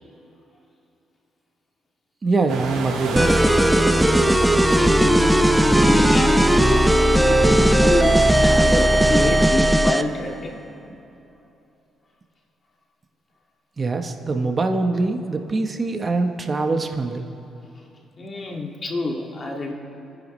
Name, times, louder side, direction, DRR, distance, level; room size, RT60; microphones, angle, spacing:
voice 1, 2.2-3.3 13.8-17.3, right 3 dB, 35° right, 5 dB, 1.0 m, -23 dB
sound 1, 2.5-9.5, right 3 dB, 85° right, 3.7 m, -29 dB
sound 2, 3.2-10.1, right 1 dB, 5° right, 0.6 m, -17 dB
voice 2, 4.7-7.4 7.7-10.6 18.2-19.7, left 2 dB, 40° left, 1 dB, 2.0 m, -28 dB
30.0 x 10.5 x 3.2 m, 2.8 s
cardioid pair, 90°, 0 cm